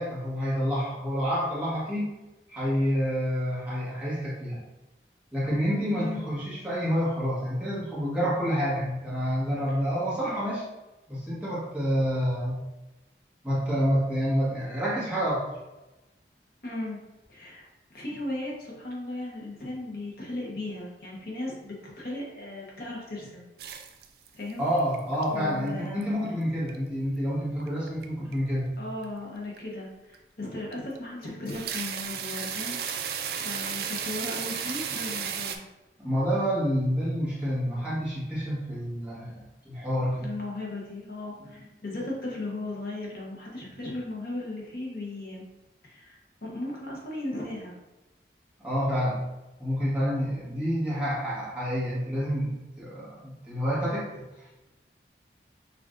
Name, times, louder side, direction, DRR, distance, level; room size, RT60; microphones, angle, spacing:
voice 1, 0.0-2.1 2.5-4.6 5.3-10.6 11.1-12.6 13.4-15.4 24.6-28.7 36.0-40.3 41.4-41.5 48.6-49.3 49.6-52.5 52.8-54.2, equal, 10° right, -9 dB, 1.2 m, -28 dB
voice 2, 5.9-6.3 10.1-10.4 16.6-17.0 17.3-23.4 24.3-24.6 25.3-26.0 28.8-32.8 33.3-35.6 40.2-45.4 45.8-47.7, left 2 dB, 55° left, -4 dB, 0.9 m, -36 dB
sound 1, 23.6-24.5 24.8-25.2 25.7-26.3 26.7-26.8 27.6-28.1 28.3-28.5 29.0-29.1 29.6-29.7 30.1-30.2 30.7-31.0 31.3-35.6, right 7 dB, 60° right, 0.3 m, -33 dB
5.9 x 2.5 x 2.5 m, 1.0 s
head